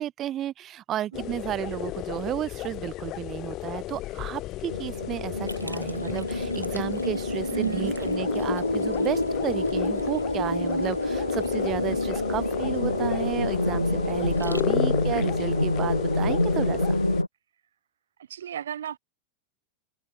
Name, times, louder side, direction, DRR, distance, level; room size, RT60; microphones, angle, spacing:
voice 1, 0.0-17.0, right 12 dB, 30° right, 0.6 m, -33 dB
sound 1, 1.1-17.2, left 17 dB, 35° left, 0.8 m, -34 dB
sound 2, 4.7-17.3, left 1 dB, 85° left, 0.3 m, -27 dB
Liquid, 5.5-15.1, equal, 90° right, 1.8 m, -46 dB
voice 2, 7.5-7.9 18.3-19.0, right 9 dB, 65° right, 1.0 m, -32 dB
figure-of-eight pair, 90°, 0 cm